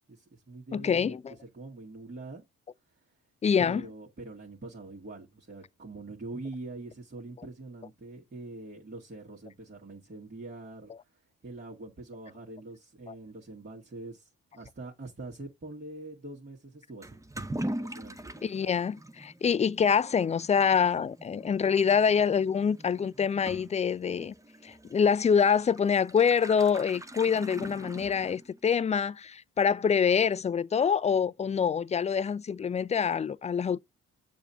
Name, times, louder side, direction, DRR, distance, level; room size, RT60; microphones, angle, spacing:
voice 1, 0.1-2.4 3.6-17.2 17.5-18.2, right 2 dB, 30° right, 1.9 m, -44 dB
voice 2, 0.7-1.3 3.4-3.8 13.1-13.2 18.4-24.3 24.6-33.8, left 6 dB, 20° left, 0.3 m, -26 dB
Toilet flush / Liquid, 17.0-28.7, right 1 dB, 10° right, 0.8 m, -42 dB
6.8 x 2.8 x 5.6 m
hypercardioid pair, 45°, 34 cm